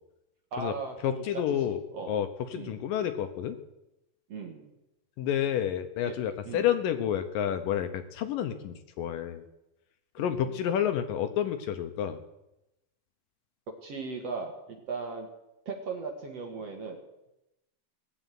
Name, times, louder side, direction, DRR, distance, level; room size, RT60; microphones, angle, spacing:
voice 1, 0.5-1.2 1.6-2.2 2.6-2.8 4.3-4.7 6.0-6.1 6.4-6.6 10.2-10.6 13.8-15.3 15.7-17.0, right 4 dB, 50° right, 3 dB, 2.3 m, -38 dB
voice 2, 1.0-1.8 2.1-3.6 5.2-9.4 10.2-12.2, left 10 dB, 70° left, 8 dB, 2.4 m, -29 dB
18.0 x 8.0 x 9.3 m, 0.92 s
omnidirectional pair, 4.4 m